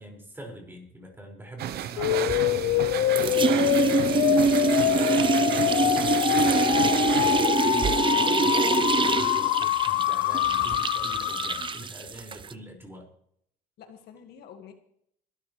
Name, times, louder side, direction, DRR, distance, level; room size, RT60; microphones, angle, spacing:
voice 1, 0.0-2.9 5.3-7.2 7.5-13.1, right 1 dB, 15° right, 0 dB, 5.7 m, -45 dB
sound 1, 1.6-7.5, right 11 dB, 70° right, 0.9 m, -33 dB
sound 2, 2.0-11.8, left 16 dB, 90° left, 0.7 m, -25 dB
sound 3, 2.3-2.9 3.2-12.5, right 6 dB, 30° right, 0.7 m, -25 dB
voice 2, 4.0-5.3 13.8-14.7, left 8 dB, 70° left, 5 dB, 2.0 m, -48 dB
23.0 x 12.5 x 3.3 m, 0.70 s
cardioid pair, 110°, 17 cm